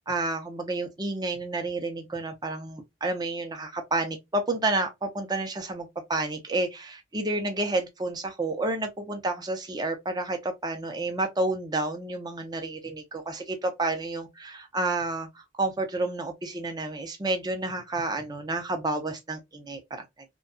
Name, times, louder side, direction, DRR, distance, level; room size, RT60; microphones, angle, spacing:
voice 1, 0.0-20.0, right 2 dB, 20° right, 0.6 m, -30 dB
2.7 x 2.2 x 2.5 m
head